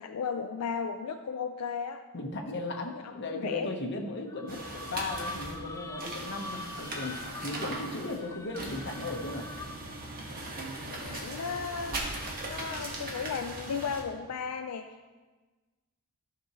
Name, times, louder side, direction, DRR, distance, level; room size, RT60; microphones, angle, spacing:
voice 1, 0.0-2.0 3.0-3.7 10.9-12.0 12.4-14.9, left 6 dB, 85° left, 6 dB, 0.4 m, -35 dB
voice 2, 2.1-9.5, left 2 dB, 50° left, 2 dB, 1.1 m, -36 dB
sound 1, 4.3-10.0, left 2 dB, 15° left, 0.4 m, -44 dB
sound 2, 4.5-14.0, right 2 dB, 40° right, 1.4 m, -39 dB
13.5 x 6.1 x 3.1 m, 1.3 s
head